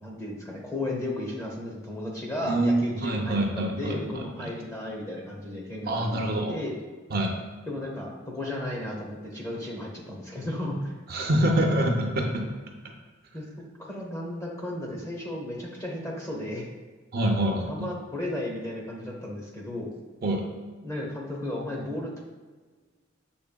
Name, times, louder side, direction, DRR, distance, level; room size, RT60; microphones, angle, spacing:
voice 1, 0.0-6.2 6.5-6.7 7.7-10.9 13.3-13.5 13.8-16.7 17.4-19.9 20.8-22.2, left 1 dB, 15° left, -2 dB, 0.7 m, -34 dB
voice 2, 2.4-4.5 5.9-6.6 7.1-7.3 11.1-12.5 17.1-17.9 20.2-20.5, right 1 dB, 50° right, 1 dB, 0.5 m, -26 dB
7.0 x 3.1 x 2.2 m, 1.4 s
head